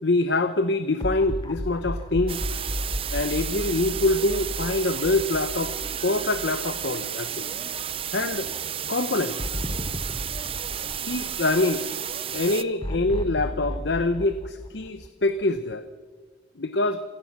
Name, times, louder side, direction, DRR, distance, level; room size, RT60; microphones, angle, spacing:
voice 1, 0.0-2.4 3.1-5.7 6.0-7.5 8.1-8.5 8.9-9.5 11.0-11.9 12.3-15.8 16.6-17.0, left 2 dB, 70° left, 10 dB, 0.9 m, -25 dB
sound 1, 1.0-7.3 7.7-7.8 9.4-11.9 12.8-15.6, equal, 25° left, 1.4 m, -34 dB
sound 2, 2.3-12.6, right 9 dB, 30° right, 0.6 m, -32 dB
27.5 x 17.5 x 6.1 m, 1.4 s
head